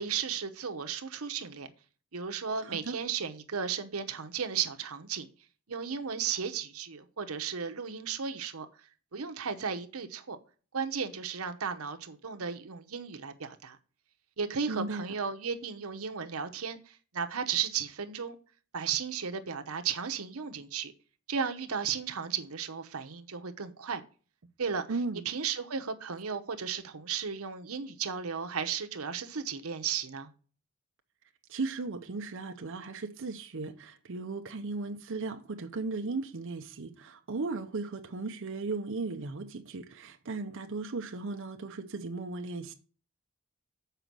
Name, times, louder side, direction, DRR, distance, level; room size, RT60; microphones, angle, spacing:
voice 1, 0.0-1.7 2.1-5.3 5.7-8.7 9.1-10.4 10.7-13.8 14.4-18.4 18.7-20.9 21.3-24.0 24.6-24.9 25.1-30.3, right 6 dB, 90° right, 0.9 m, -34 dB
voice 2, 2.6-3.0 14.7-15.1 24.9-25.2 31.5-42.7, right 3 dB, 65° right, 0.7 m, -36 dB
6.8 x 5.0 x 6.0 m
head